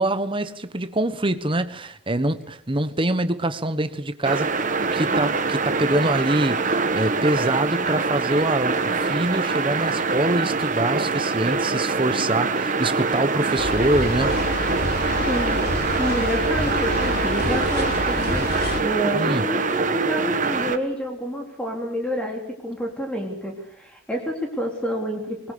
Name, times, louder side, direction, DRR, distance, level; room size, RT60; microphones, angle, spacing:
voice 1, 0.0-4.6 4.9-14.4 19.1-19.5, right 1 dB, 30° right, 1.3 m, -24 dB
sound 1, 4.2-20.8, right 4 dB, 45° right, 1.5 m, -24 dB
sound 2, 13.6-18.8, left 1 dB, 60° left, 3.8 m, -28 dB
voice 2, 15.2-25.5, equal, 5° left, 3.8 m, -28 dB
24.5 x 21.0 x 6.9 m
head